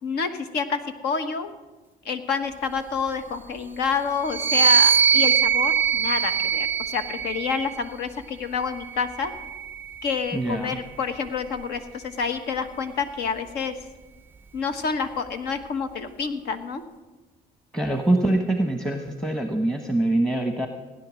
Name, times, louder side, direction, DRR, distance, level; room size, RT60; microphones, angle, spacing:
voice 1, 0.0-1.5 2.0-9.3 10.0-13.7 14.5-16.8, left 5 dB, 75° left, 9 dB, 1.3 m, -28 dB
sound 1, 4.2-7.8 8.7-10.3, right 7 dB, 10° right, 0.4 m, -22 dB
voice 2, 10.3-10.8 17.7-20.7, right 1 dB, 5° left, 4 dB, 1.0 m, -24 dB
17.0 x 10.0 x 6.3 m, 1.2 s
cardioid pair, 110°, 17 cm